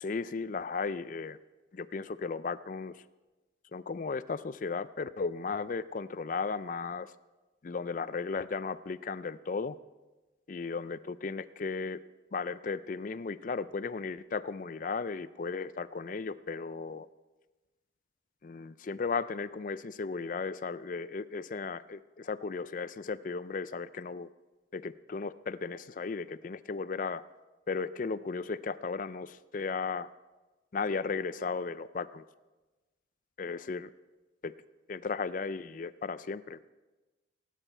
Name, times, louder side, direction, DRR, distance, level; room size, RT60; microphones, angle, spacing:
voice 1, 0.0-1.4 1.7-3.0 3.7-7.1 7.6-9.8 10.5-12.0 12.3-17.1 18.4-24.3 24.7-27.2 27.7-30.1 30.7-32.2 33.4-33.9 34.4-34.5 34.9-36.7, left 4 dB, 45° left, 15 dB, 0.4 m, -35 dB
17.0 x 10.0 x 4.5 m, 1.2 s
head